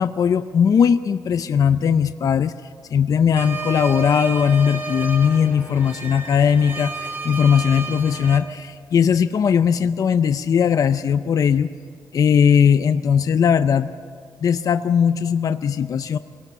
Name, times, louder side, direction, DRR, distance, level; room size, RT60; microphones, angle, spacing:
voice 1, 0.0-2.5 2.9-11.7 12.1-13.9 14.4-16.2, left 7 dB, 55° left, 10 dB, 0.5 m, -19 dB
sound 1, 3.4-8.4, right 3 dB, 25° right, 1.8 m, -31 dB
24.0 x 17.5 x 8.1 m, 2.1 s
wide cardioid pair, 140°, 7 cm